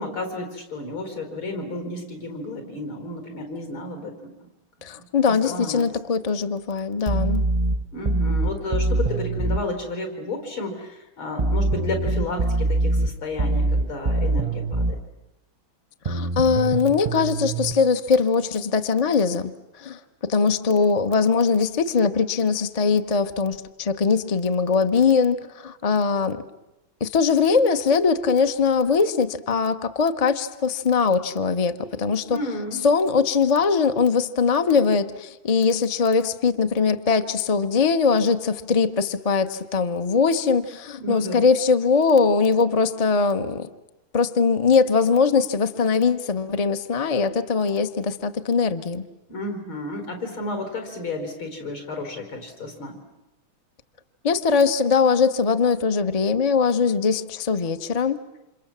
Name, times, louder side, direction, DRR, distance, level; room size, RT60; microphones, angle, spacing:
voice 1, 0.0-4.3 5.3-5.8 7.9-15.0 32.3-32.9 41.0-41.4 49.3-53.0, left 2 dB, 70° left, 4 dB, 5.2 m, -32 dB
voice 2, 4.8-7.4 16.0-26.4 27.0-32.4 32.8-43.7 44.1-49.1 54.2-58.2, left 5 dB, 35° left, 8 dB, 0.5 m, -21 dB
sound 1, 7.1-9.6 11.4-15.0 16.1-17.7, right 2 dB, 30° right, 0.6 m, -23 dB
29.0 x 27.0 x 7.4 m, 0.95 s
omnidirectional pair, 2.3 m